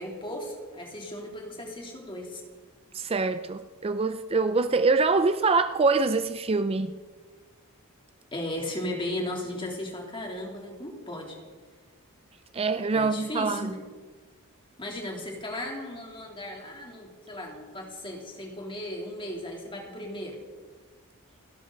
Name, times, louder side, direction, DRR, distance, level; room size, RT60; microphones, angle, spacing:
voice 1, 0.0-2.4 8.3-11.4 12.9-13.8 14.8-20.4, left 1 dB, 25° left, 0 dB, 3.1 m, -36 dB
voice 2, 2.9-7.0 12.5-13.7, right 4 dB, 25° right, 11 dB, 0.5 m, -24 dB
29.5 x 11.5 x 3.9 m, 1.4 s
head